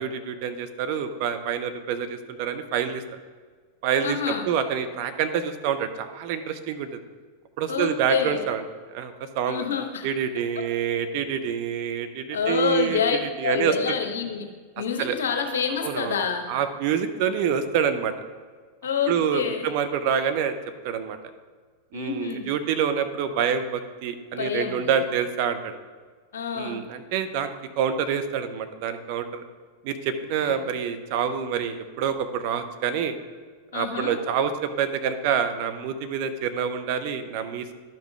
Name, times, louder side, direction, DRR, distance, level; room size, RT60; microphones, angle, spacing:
voice 1, 0.0-3.0 3.8-4.2 4.5-7.0 7.6-8.6 8.9-9.7 10.0-14.0 15.0-15.2 15.8-16.2 16.5-18.1 19.1-20.6 20.8-21.2 21.9-25.8 26.5-29.4 29.8-33.1 33.7-37.7, right 7 dB, 45° right, 9 dB, 0.7 m, -27 dB
voice 2, 4.0-4.5 7.7-8.4 9.5-10.1 12.3-14.5 14.8-16.4 18.8-19.7 21.9-22.5 24.3-25.0 26.3-26.8 30.4-30.6 33.7-34.2, left 7 dB, 65° left, 4 dB, 1.0 m, -27 dB
11.5 x 5.4 x 3.5 m, 1.5 s
figure-of-eight pair, 90°, 0 cm